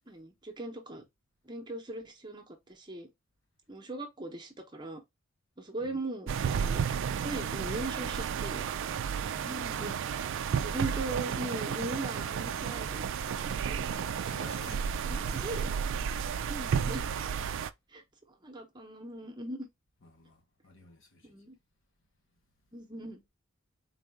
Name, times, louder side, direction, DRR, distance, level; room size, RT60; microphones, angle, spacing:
voice 1, 0.1-1.0 1.4-3.1 3.7-5.0 5.6-8.6 9.4-10.0 10.6-13.9 15.0-15.7 16.5-17.1 17.9-18.0 18.3-19.7 21.2-21.6 22.7-23.2, right 2 dB, 20° right, 0.8 m, -39 dB
sound 1, 6.3-17.7, right 7 dB, 60° right, 0.3 m, -32 dB
voice 2, 14.2-15.4 20.0-21.3, left 2 dB, 60° left, 1.0 m, -51 dB
4.0 x 2.5 x 3.4 m
head